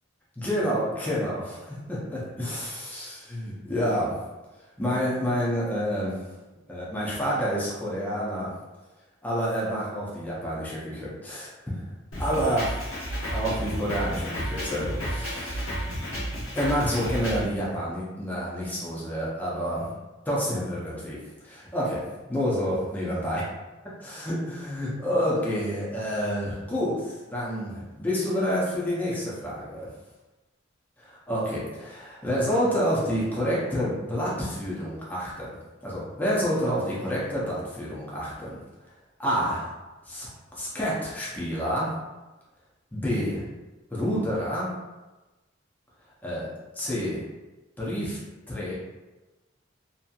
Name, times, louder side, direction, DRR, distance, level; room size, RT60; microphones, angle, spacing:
voice 1, 0.4-4.2 4.8-6.2 6.7-8.6 9.2-11.8 12.2-12.8 13.3-15.7 16.5-19.9 20.3-22.0 22.3-23.4 24.0-29.9 31.0-35.5 35.8-38.6 39.2-39.7 40.1-41.9 42.9-43.4 43.9-44.7 46.2-46.5 46.8-47.2 47.8-48.2 48.5-48.7, equal, 10° left, -7 dB, 0.6 m, -28 dB
Drum kit, 12.1-17.4, equal, 90° left, 1.1 m, -32 dB
2.7 x 2.7 x 2.4 m, 1.1 s
head